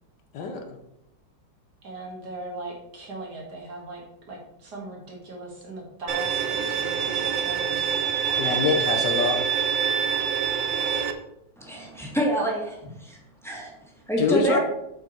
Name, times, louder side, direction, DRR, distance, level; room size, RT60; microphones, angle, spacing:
voice 1, 0.3-0.7 8.4-9.4 14.2-14.6, left 4 dB, 70° left, 5 dB, 1.4 m, -24 dB
voice 2, 1.8-7.9 8.3-8.7, right 2 dB, 60° right, -2 dB, 2.4 m, -39 dB
Bowed string instrument, 6.1-11.1, right 7 dB, 85° right, 1.5 m, -25 dB
voice 3, 11.6-13.2 13.4-13.7 14.1-14.6, right 1 dB, ahead, -3 dB, 1.8 m, -27 dB
8.2 x 4.9 x 4.5 m, 0.82 s
omnidirectional pair, 2.0 m